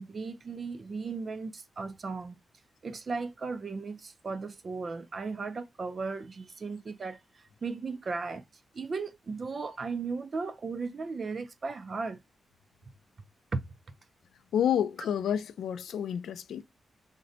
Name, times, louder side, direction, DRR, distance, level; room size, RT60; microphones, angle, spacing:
voice 1, 0.0-2.4 2.8-7.2 7.6-8.4 8.7-12.2 13.5-13.6, right 4 dB, 40° right, 0.4 m, -36 dB
voice 2, 14.5-16.6, left 9 dB, 85° left, 0.3 m, -29 dB
3.8 x 2.1 x 2.5 m
wide cardioid pair, 130°, 0 cm